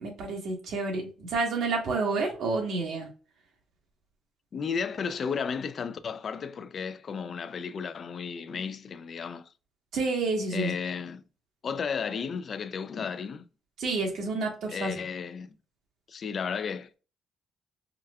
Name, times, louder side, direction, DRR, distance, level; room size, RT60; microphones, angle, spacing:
voice 1, 0.0-3.1 9.9-10.7 13.8-14.9, right 3 dB, 75° right, 1.3 m, -29 dB
voice 2, 4.5-9.5 10.5-11.2 11.6-13.5 14.7-15.5 16.1-17.0, left 6 dB, 50° left, 0.3 m, -33 dB
4.7 x 2.3 x 2.2 m
cardioid pair, 90°, 0 cm